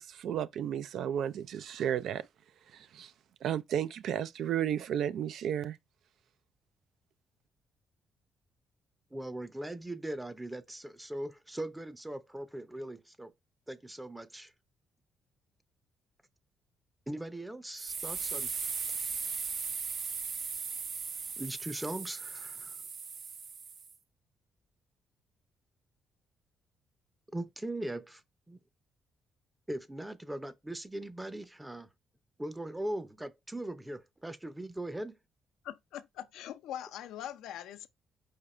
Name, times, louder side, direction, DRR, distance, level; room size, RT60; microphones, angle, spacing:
voice 1, 0.0-2.3 2.7-3.1 3.4-5.8, right 9 dB, 70° right, 0.3 m, -33 dB
voice 2, 9.1-13.3 13.7-14.5 17.1-18.5 21.4-22.8 27.3-28.2 28.5-28.6 29.7-31.9 32.4-35.2, right 1 dB, 10° right, 0.6 m, -40 dB
sound 1, 17.8-23.9, right 5 dB, 55° right, 0.7 m, -38 dB
voice 3, 35.6-37.9, left 11 dB, 90° left, 0.5 m, -42 dB
5.1 x 2.4 x 4.2 m
cardioid pair, 95°, 0 cm